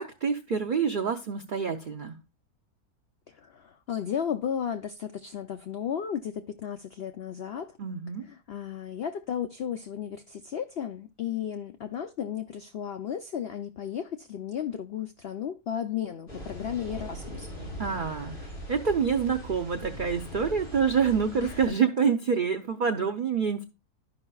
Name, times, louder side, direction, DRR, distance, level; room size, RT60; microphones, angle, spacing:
voice 1, 0.0-2.2 7.8-8.2 17.8-23.6, right 6 dB, 80° right, 0.4 m, -27 dB
voice 2, 3.4-7.7 8.5-17.5 21.4-21.6, left 9 dB, 80° left, 0.5 m, -34 dB
sound 1, 16.3-21.7, equal, 35° left, 2.5 m, -40 dB
12.5 x 5.4 x 2.3 m
omnidirectional pair, 1.6 m